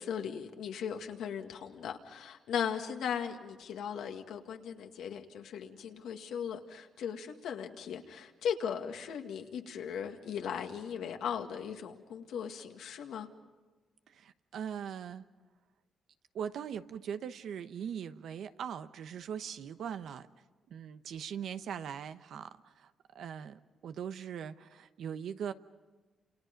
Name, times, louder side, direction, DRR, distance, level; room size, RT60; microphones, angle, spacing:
voice 1, 0.0-13.3, left 8 dB, 85° left, 2.0 m, -38 dB
voice 2, 14.1-15.2 16.3-20.3 20.7-25.5, right 8 dB, 75° right, 1.0 m, -41 dB
29.0 x 28.0 x 5.3 m
cardioid pair, 85°, 0 cm